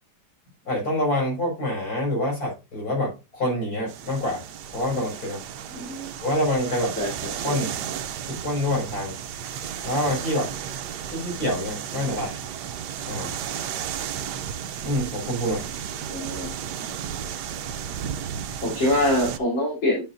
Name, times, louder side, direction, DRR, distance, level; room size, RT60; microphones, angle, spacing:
voice 1, 0.7-4.4 4.7-5.4 6.2-6.9 7.4-7.7 8.3-9.1 9.8-10.5 11.1-12.4 13.1-13.3 14.8-15.7, left 1 dB, 50° left, -2 dB, 5.9 m, -26 dB
sound 1, 3.9-19.4, right 8 dB, 70° right, 1.2 m, -34 dB
voice 2, 5.7-6.1 7.0-7.6 12.0-12.2 16.1-16.5 18.6-20.1, left 1 dB, 80° left, -6 dB, 4.2 m, -25 dB
10.5 x 6.6 x 2.6 m, 0.26 s
omnidirectional pair, 2.0 m